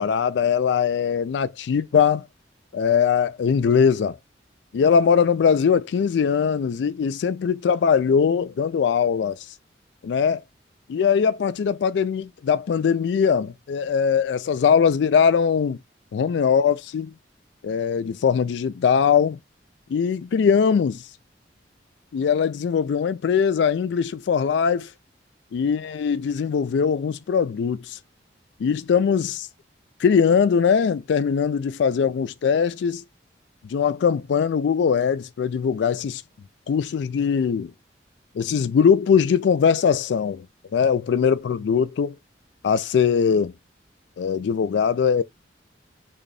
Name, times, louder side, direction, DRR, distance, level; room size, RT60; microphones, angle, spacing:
voice 1, 0.0-2.3 2.7-4.2 4.7-9.4 10.0-10.4 10.9-15.8 16.1-17.1 17.6-19.4 19.9-21.0 22.1-24.9 25.5-28.0 28.6-29.5 30.0-33.0 33.6-36.2 36.7-37.7 38.4-40.5 40.7-42.2 42.6-43.5 44.2-45.2, left 6 dB, 75° left, 0.3 m, -21 dB
3.9 x 2.3 x 3.2 m
head